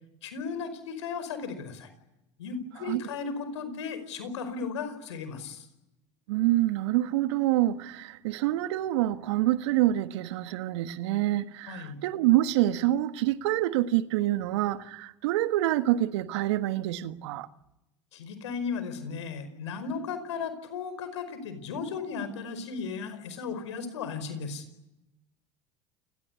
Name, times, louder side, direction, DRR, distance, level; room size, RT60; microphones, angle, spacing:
voice 1, 0.2-1.9 2.4-5.7 11.7-12.0 18.1-24.6, left 5 dB, 80° left, 5.2 m, -35 dB
voice 2, 6.3-17.5, right 15 dB, 70° right, 1.5 m, -26 dB
29.0 x 19.0 x 9.7 m
hypercardioid pair, 75°, 15 cm